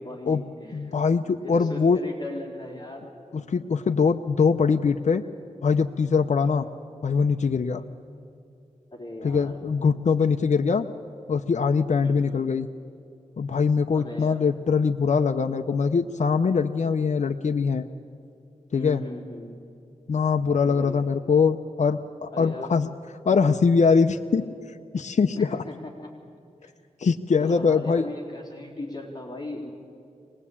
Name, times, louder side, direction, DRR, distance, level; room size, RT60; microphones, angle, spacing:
voice 1, 0.0-1.0 1.2-3.2 8.9-9.6 12.0-12.4 13.9-14.5 18.7-19.6 20.6-21.1 22.3-22.8 25.4-26.1 26.6-26.7 27.4-29.7, left 1 dB, 30° left, 0 dB, 3.9 m, -38 dB
voice 2, 0.7-2.0 3.3-5.2 5.6-6.7 7.0-7.8 9.2-10.9 11.3-12.7 13.4-17.8 18.7-19.0 20.1-22.9 23.2-24.4 24.9-25.5 27.0-28.1, left 5 dB, 65° left, 5 dB, 0.7 m, -22 dB
24.5 x 20.0 x 8.6 m, 2.7 s
wide cardioid pair, 90°, 13 cm